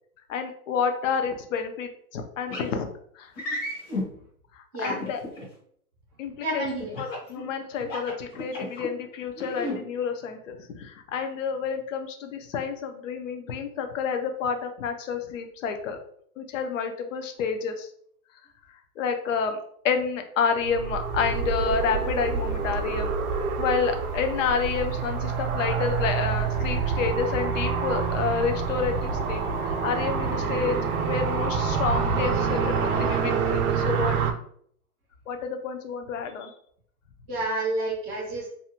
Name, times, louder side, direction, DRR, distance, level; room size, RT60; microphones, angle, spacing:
voice 1, 0.3-2.9 3.2-3.3 4.8-5.2 6.2-6.6 7.0-16.0 16.4-17.9 19.0-19.6 19.8-23.1 23.6-30.8 31.0-34.2 35.3-36.5, left 6 dB, 55° left, 6 dB, 0.5 m, -29 dB
sound 1, 2.5-2.7 3.4-4.1 4.8-5.4 6.9-7.3 7.8-8.9 9.4-9.8, left 1 dB, 35° left, 1.0 m, -32 dB
voice 2, 6.4-7.0 37.3-38.5, right 2 dB, 10° right, -8 dB, 0.4 m, -29 dB
sound 2, 20.6-34.3, right 6 dB, 70° right, 0.5 m, -27 dB
2.6 x 2.1 x 2.7 m, 0.64 s
hypercardioid pair, 160°, 46 cm